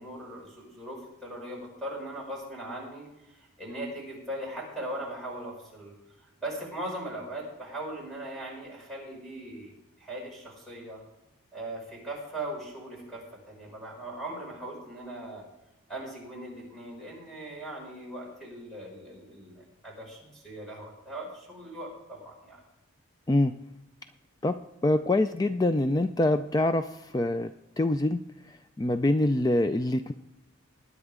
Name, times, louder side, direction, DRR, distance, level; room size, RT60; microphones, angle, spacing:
voice 1, 0.0-5.9 6.4-11.0 11.5-15.4 15.9-22.6, right 1 dB, ahead, -3 dB, 5.8 m, -39 dB
voice 2, 24.4-27.5 27.8-28.2 28.8-30.1, left 1 dB, 15° left, 9 dB, 0.3 m, -25 dB
20.5 x 9.8 x 3.7 m, 0.90 s
head